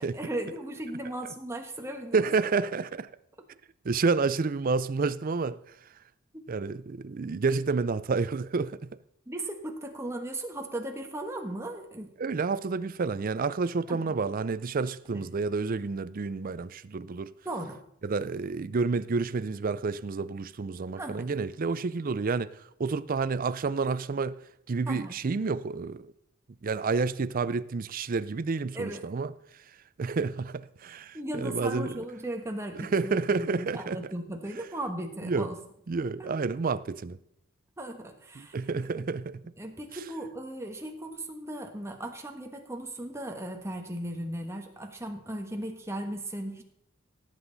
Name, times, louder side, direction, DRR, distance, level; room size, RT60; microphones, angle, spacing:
voice 1, 0.0-2.3 9.3-12.1 13.9-14.1 15.1-15.2 17.4-17.8 20.9-21.3 24.8-25.1 28.7-29.0 31.1-35.6 36.2-36.3 37.8-38.6 38.9-39.0 39.6-46.6, right 1 dB, 15° right, 1.3 m, -37 dB
voice 2, 2.1-3.1 3.8-5.6 6.5-8.8 12.2-17.3 18.0-24.4 24.7-26.1 26.6-29.3 30.0-32.0 32.8-34.0 35.2-35.5 35.9-37.2 38.4-39.4, right 4 dB, 40° right, 0.4 m, -29 dB
17.0 x 7.9 x 4.0 m
head